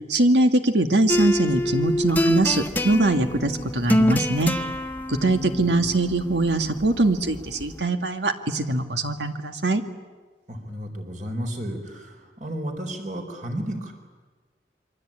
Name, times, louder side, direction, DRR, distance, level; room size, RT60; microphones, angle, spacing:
voice 1, 0.1-4.5 5.1-9.8, right 2 dB, 75° right, 7 dB, 2.0 m, -22 dB
sound 1, 1.1-7.8, left 1 dB, 10° left, 1.3 m, -26 dB
voice 2, 5.2-5.8 10.5-13.9, right 1 dB, 45° right, 5 dB, 4.3 m, -33 dB
28.0 x 23.5 x 8.9 m, 1.4 s
head